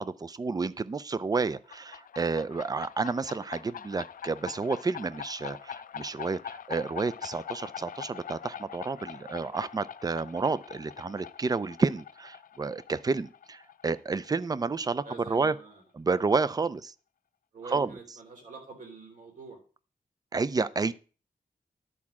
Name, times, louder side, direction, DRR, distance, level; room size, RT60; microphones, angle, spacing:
voice 1, 0.0-15.6 15.9-16.9 17.6-18.0 20.3-20.9, right 4 dB, 25° right, 16 dB, 0.4 m, -30 dB
sound 1, 1.5-14.9, left 8 dB, 65° left, 0.4 m, -44 dB
voice 2, 15.0-15.8 17.5-19.6, right 4 dB, 65° right, 2 dB, 3.6 m, -45 dB
11.0 x 4.7 x 7.3 m, 0.37 s
wide cardioid pair, 175°, 15 cm